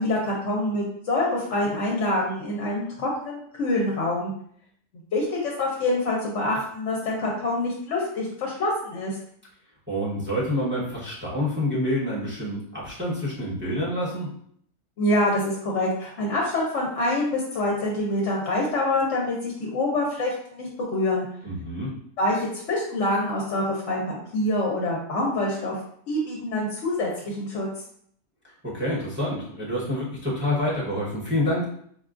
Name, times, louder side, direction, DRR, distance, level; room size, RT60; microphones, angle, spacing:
voice 1, 0.0-4.3 5.1-9.2 15.0-21.2 22.2-25.7 26.1-27.7, left 1 dB, 60° left, -3 dB, 0.9 m, -26 dB
voice 2, 9.9-14.3 21.4-21.9 28.4-31.6, left 1 dB, 10° right, -7 dB, 0.8 m, -27 dB
4.4 x 2.3 x 2.4 m, 0.64 s
omnidirectional pair, 1.5 m